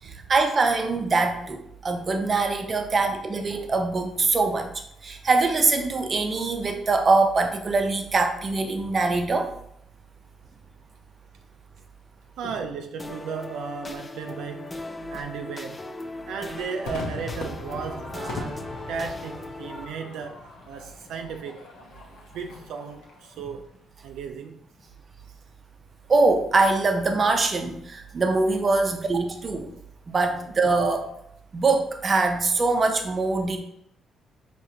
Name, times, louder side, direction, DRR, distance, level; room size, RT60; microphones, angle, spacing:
voice 1, 0.0-4.7 5.0-9.5 26.1-29.7 30.1-31.1 31.5-33.6, right 3 dB, 40° right, 5 dB, 0.6 m, -23 dB
voice 2, 12.4-14.8 15.1-15.9 16.3-23.6 24.0-24.6, right 6 dB, 85° right, 4 dB, 0.3 m, -35 dB
sound 1, 13.0-19.8, left 2 dB, 20° left, 0.4 m, -38 dB
Crowd / Fireworks, 16.9-23.4, left 3 dB, 90° left, 1.0 m, -39 dB
4.8 x 3.0 x 2.8 m, 0.73 s
cardioid pair, 90°, 0 cm